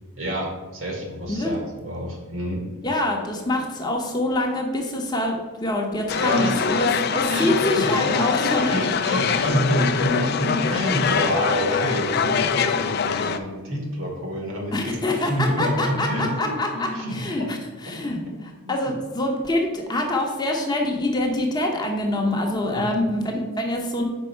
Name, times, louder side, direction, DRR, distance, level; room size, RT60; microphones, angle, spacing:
voice 1, 0.1-2.6 6.2-6.8 7.3-16.5 16.9-17.5 17.9-18.0 18.7-18.9 22.7-22.8, equal, 65° right, 0 dB, 1.7 m, -27 dB
voice 2, 2.8-6.9 7.1-8.7 14.7-18.2 18.7-24.0, left 1 dB, 20° left, 1 dB, 0.7 m, -25 dB
sound 1, 6.1-13.4, left 6 dB, 45° left, 0.3 m, -24 dB
5.3 x 4.1 x 5.6 m, 1.3 s
head